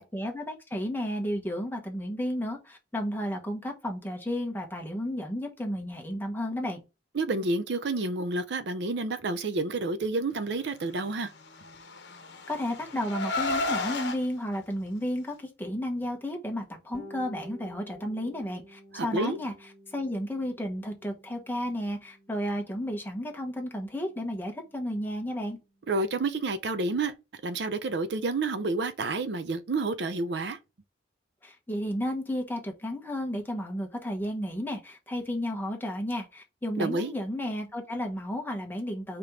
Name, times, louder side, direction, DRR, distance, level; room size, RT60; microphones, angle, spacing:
voice 1, 0.0-6.8 12.5-19.5 19.9-25.6 31.4-39.2, equal, 10° left, 1.0 m, -32 dB
voice 2, 7.1-11.3 18.9-19.4 25.9-27.1 27.4-30.6 36.8-37.1, right 3 dB, 65° right, 0.5 m, -29 dB
Car, 11.7-14.2, left 2 dB, 65° left, 0.9 m, -32 dB
Bass guitar, 16.9-26.5, equal, 15° right, 1.9 m, -53 dB
5.0 x 3.0 x 3.5 m
head